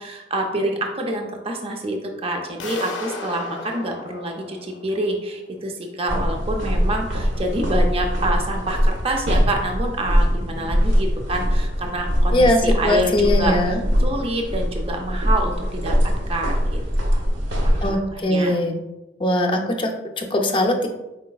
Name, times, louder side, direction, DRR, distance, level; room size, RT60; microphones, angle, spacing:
voice 1, 0.0-13.6 14.0-16.0 16.3-16.8 17.1-17.2 17.6-18.5, right 1 dB, 30° right, 2 dB, 0.5 m, -27 dB
sound 1, 2.6-5.4, left 3 dB, 85° left, 0.5 m, -35 dB
sound 2, 6.1-17.9, equal, 75° right, 0.9 m, -22 dB
voice 2, 12.3-13.8 17.8-18.8 19.2-20.9, left 1 dB, 30° left, 3 dB, 0.5 m, -20 dB
4.7 x 4.2 x 2.3 m, 1.0 s
head